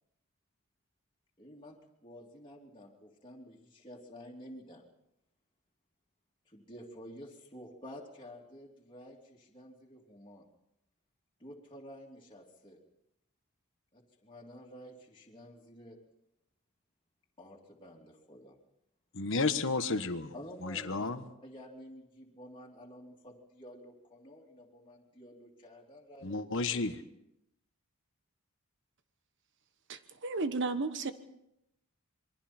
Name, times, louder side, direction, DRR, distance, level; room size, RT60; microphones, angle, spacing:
voice 1, 1.4-4.8 6.5-10.4 11.4-12.8 13.9-16.0 17.4-18.6 20.3-26.8, equal, 20° left, -3 dB, 2.9 m, -51 dB
voice 2, 19.1-20.3 20.6-21.2 26.2-26.9, left 3 dB, 60° left, 9 dB, 1.3 m, -32 dB
voice 3, 29.9-31.1, right 3 dB, 55° right, 10 dB, 1.2 m, -33 dB
27.5 x 22.5 x 4.4 m, 0.83 s
head